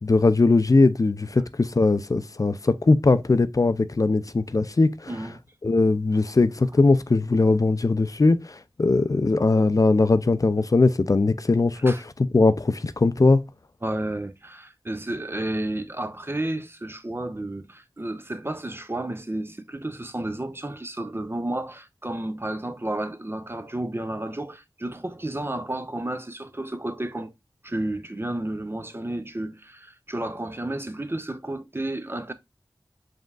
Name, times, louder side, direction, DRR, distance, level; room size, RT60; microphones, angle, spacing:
voice 1, 0.0-5.1 5.6-13.4, left 3 dB, 45° left, 0.4 m, -20 dB
voice 2, 5.1-5.4 11.8-12.0 13.8-27.3 27.6-32.3, right 1 dB, 30° right, 0.7 m, -32 dB
5.1 x 3.5 x 2.3 m
wide cardioid pair, 40°, 8 cm